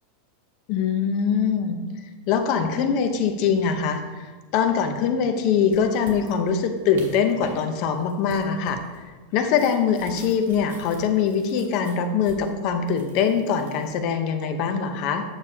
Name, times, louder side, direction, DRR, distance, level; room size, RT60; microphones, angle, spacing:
voice 1, 0.7-1.8 2.3-8.8 9.3-15.2, left 6 dB, 40° left, 7 dB, 0.7 m, -23 dB
sound 1, 5.6-7.6 7.9-13.9, right 2 dB, 90° right, 1.9 m, -45 dB
8.8 x 6.7 x 2.8 m, 1.3 s
supercardioid pair, 165°, 0 cm